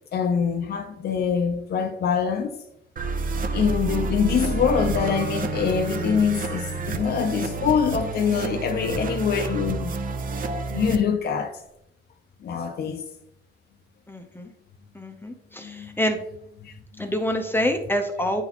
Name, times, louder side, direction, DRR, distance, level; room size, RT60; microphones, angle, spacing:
voice 1, 0.1-2.6 3.5-9.9 10.7-11.6 12.4-13.0 15.6-15.9 16.6-17.1 18.2-18.3, left 7 dB, 50° left, 0.6 m, -24 dB
sound 1, 3.0-11.0, right 3 dB, 45° right, 0.6 m, -29 dB
Bowed string instrument, 4.3-9.5, right 5 dB, 70° right, 1.2 m, -38 dB
voice 2, 14.1-14.5 14.9-16.2 17.0-18.4, equal, 10° left, 0.7 m, -26 dB
9.9 x 4.1 x 2.9 m
wide cardioid pair, 150°, 21 cm